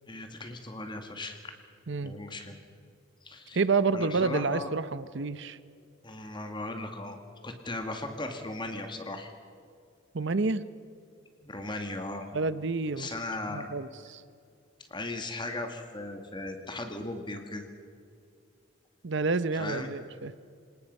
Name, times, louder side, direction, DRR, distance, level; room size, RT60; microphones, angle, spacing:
voice 1, 0.1-1.5 2.0-2.6 3.2-3.6 3.9-4.7 6.0-7.2 7.4-9.3 11.4-12.2 13.0-13.7 14.9-17.7 19.5-19.9, left 2 dB, 25° left, 5 dB, 2.0 m, -37 dB
voice 2, 3.5-5.6 10.1-10.6 12.3-13.1 13.5-14.2 19.0-20.3, right 4 dB, 60° right, 15 dB, 0.8 m, -29 dB
27.5 x 19.0 x 5.4 m, 2.4 s
head